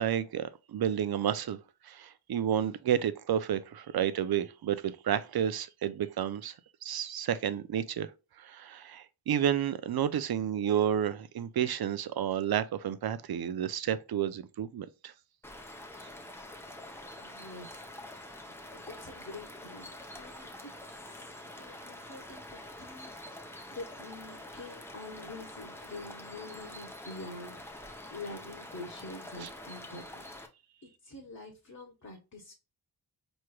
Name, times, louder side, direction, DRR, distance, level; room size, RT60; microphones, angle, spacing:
voice 1, 0.0-6.5 6.8-8.1 8.4-15.1 29.4-29.5, right 9 dB, 55° right, 0.5 m, -31 dB
sound 1, 15.4-30.5, left 1 dB, 5° left, 0.7 m, -46 dB
voice 2, 17.2-20.7 21.0-21.3 21.6-30.2 30.8-32.5, left 2 dB, 40° left, 1.2 m, -47 dB
4.5 x 3.1 x 2.3 m
cardioid pair, 75°, 45 cm